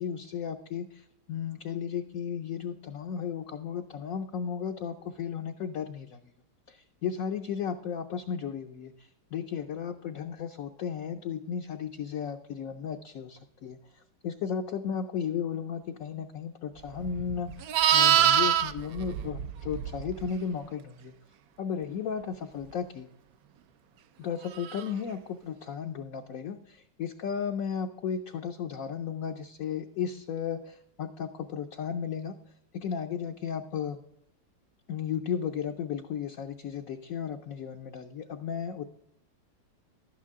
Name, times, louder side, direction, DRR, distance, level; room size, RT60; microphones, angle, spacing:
voice 1, 0.0-6.2 6.7-21.1 21.6-23.1 24.2-32.4 32.7-34.0 34.9-38.8, left 7 dB, 65° left, 4 dB, 0.9 m, -34 dB
Livestock farm animals working animals, 17.0-20.3 24.6-24.9, right 10 dB, 70° right, 0.9 m, -25 dB
12.0 x 9.2 x 3.6 m, 0.75 s
omnidirectional pair, 1.9 m